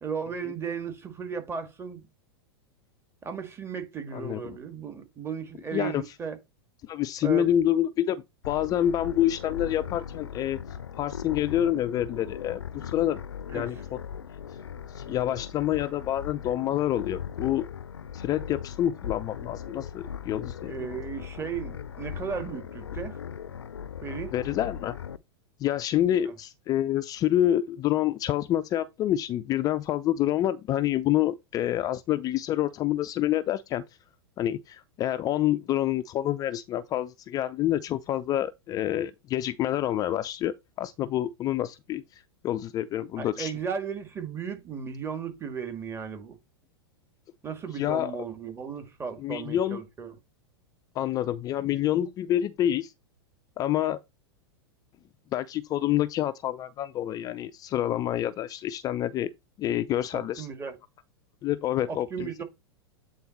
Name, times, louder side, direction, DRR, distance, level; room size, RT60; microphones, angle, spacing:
voice 1, 0.0-2.1 3.2-6.4 7.2-7.5 13.5-13.7 20.7-23.2 24.0-24.3 26.2-26.3 43.2-46.4 47.4-50.1 60.1-60.8 61.9-62.4, right 6 dB, 20° right, 1.8 m, -35 dB
voice 2, 5.7-6.0 6.8-10.6 11.0-13.2 13.5-13.8 14.9-17.6 18.1-20.7 24.3-24.9 25.6-33.8 34.4-43.5 47.7-48.1 49.2-49.8 50.9-52.9 53.6-54.0 55.3-59.3 59.6-60.5 61.4-62.4, left 12 dB, 30° left, 0.4 m, -27 dB
sound 1, 8.4-25.2, left 8 dB, 80° left, 0.5 m, -39 dB
8.5 x 3.9 x 4.3 m
figure-of-eight pair, 100°, 13 cm